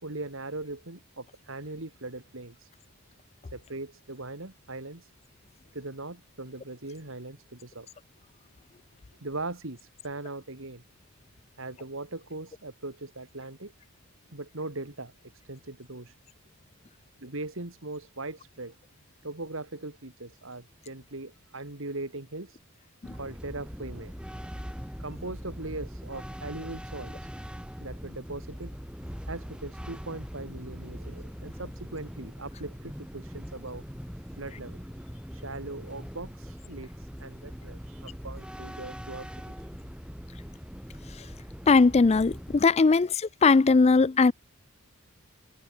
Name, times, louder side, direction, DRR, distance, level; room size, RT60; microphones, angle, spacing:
voice 1, 0.0-2.7 3.5-5.1 5.7-7.9 9.2-10.8 11.6-13.7 14.3-15.1 15.4-16.2 17.2-18.8 19.2-22.6 23.1-24.2 25.0-27.3 27.8-28.7 29.3-33.8 34.4-39.7, right 2 dB, 60° right, 2.3 m, -40 dB
sound 1, 23.0-42.6, equal, 5° right, 4.2 m, -41 dB
voice 2, 41.7-43.1 43.4-44.3, left 4 dB, 30° left, 0.4 m, -19 dB
head